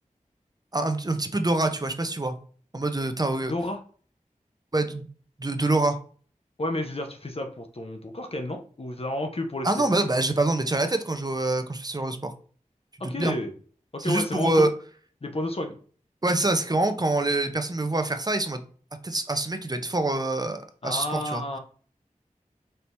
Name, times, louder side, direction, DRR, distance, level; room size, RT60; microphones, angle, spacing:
voice 1, 0.7-2.4 2.7-3.5 4.7-5.1 5.4-6.0 9.6-12.3 13.0-13.3 14.0-14.7 16.2-18.6 19.0-21.4, right 2 dB, 30° right, 8 dB, 0.6 m, -25 dB
voice 2, 3.5-3.8 6.6-9.9 13.0-13.5 13.9-14.7 15.2-15.8 20.8-21.6, left 1 dB, 45° left, 4 dB, 0.6 m, -31 dB
4.4 x 2.8 x 3.3 m, 0.43 s
wide cardioid pair, 40°, 14 cm